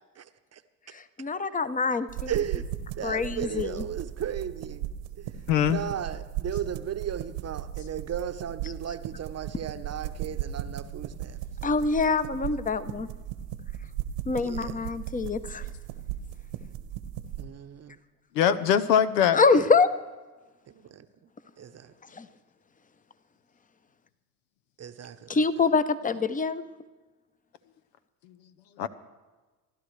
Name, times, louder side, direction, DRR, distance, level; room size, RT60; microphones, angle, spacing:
voice 1, 0.2-0.6 2.3-2.6 3.0-4.8 5.2-11.4 14.4-14.9 17.4-18.0 20.7-21.3 21.6-21.9 24.8-25.4, right 9 dB, 30° right, 10 dB, 0.9 m, -36 dB
voice 2, 0.9-2.3 3.0-3.8 11.6-13.1 14.3-15.6 19.3-19.9 22.2-22.3 25.3-26.6, left 4 dB, 15° left, 13 dB, 0.8 m, -25 dB
sound 1, 2.1-17.5, right 11 dB, 70° right, 1.3 m, -37 dB
voice 3, 5.5-5.8 18.3-19.4 28.8-28.9, left 9 dB, 85° left, 12 dB, 0.9 m, -22 dB
28.0 x 12.0 x 3.3 m, 1.3 s
hypercardioid pair, 75°, 49 cm